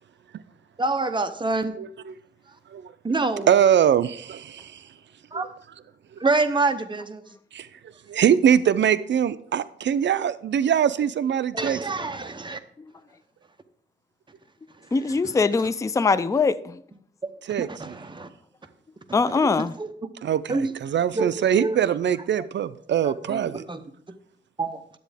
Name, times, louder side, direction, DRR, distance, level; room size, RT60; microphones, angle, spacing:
voice 1, 0.8-1.7 3.0-3.5 5.3-5.5 6.2-7.2 11.5-12.6 15.1-15.3 17.6-18.3 19.3-19.9 20.5-20.7 21.1-21.8 22.4-22.5 23.0-23.8 24.6-24.8, right 3 dB, 25° right, 0.8 m, -27 dB
voice 2, 3.5-4.8 7.5-7.7 8.1-11.8 17.5-17.7 20.2-20.4 20.8-23.6, right 9 dB, 75° right, 0.4 m, -22 dB
voice 3, 14.9-16.8 19.1-19.7, left 4 dB, 15° left, 0.3 m, -22 dB
10.5 x 8.1 x 3.4 m
wide cardioid pair, 105°, 19 cm